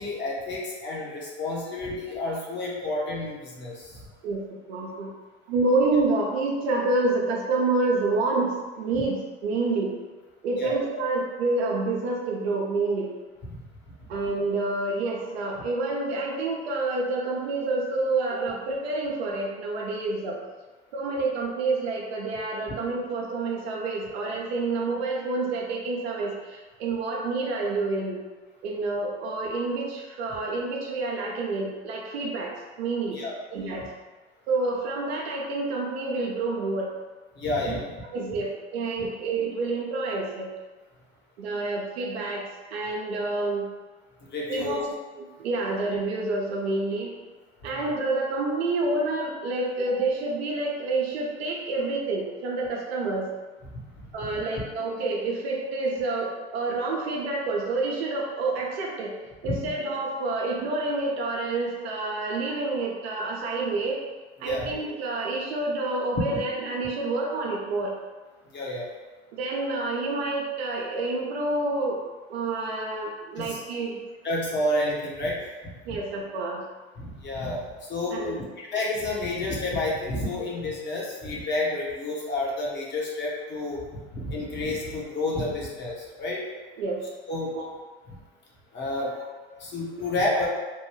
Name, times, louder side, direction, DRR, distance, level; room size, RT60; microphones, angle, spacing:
voice 1, 0.0-4.0 10.6-10.7 33.1-33.3 37.4-37.8 39.0-39.1 44.3-44.8 47.7-47.8 54.3-54.4 59.4-59.5 64.4-64.7 68.5-68.9 73.4-73.6 74.2-75.4 77.0-77.6 77.9-83.8 84.1-86.4 87.3-87.5 88.1-88.2 88.7-89.1 89.6-90.5, left 2 dB, 35° left, -3 dB, 1.0 m, -30 dB
voice 2, 4.7-5.1 5.5-9.9 10.4-13.1 14.1-20.4 20.9-28.2 28.6-33.2 33.5-33.8 34.5-36.9 37.7-37.8 38.1-40.5 41.4-42.4 42.7-43.7 44.5-47.1 47.6-53.3 54.1-59.1 59.4-64.0 64.4-67.9 69.3-72.0 72.3-74.0 75.9-76.6 78.1-78.5 86.8-87.0 87.5-87.7 89.0-89.1, right 3 dB, 75° right, -1 dB, 0.8 m, -28 dB
3.1 x 2.2 x 3.1 m, 1.3 s
hypercardioid pair, 90°, 32 cm